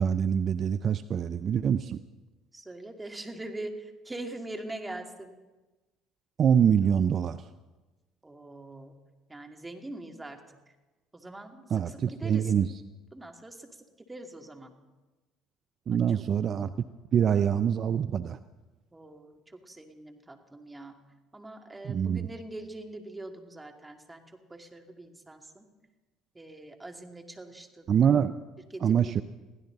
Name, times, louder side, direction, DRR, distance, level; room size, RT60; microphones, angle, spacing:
voice 1, 0.0-2.0 6.4-7.5 11.7-12.8 15.9-16.7 17.1-18.4 21.8-22.3 27.9-28.4 28.8-29.2, right 8 dB, 50° right, 12 dB, 0.5 m, -25 dB
voice 2, 2.5-5.3 8.2-9.0 9.3-10.4 11.1-12.6 13.1-14.7 16.1-16.2 18.9-20.9 21.3-24.2 24.5-25.7 26.3-28.0 28.7-29.2, right 2 dB, 15° right, 4 dB, 2.5 m, -43 dB
22.0 x 15.5 x 4.0 m, 1.2 s
hypercardioid pair, 70°, 0 cm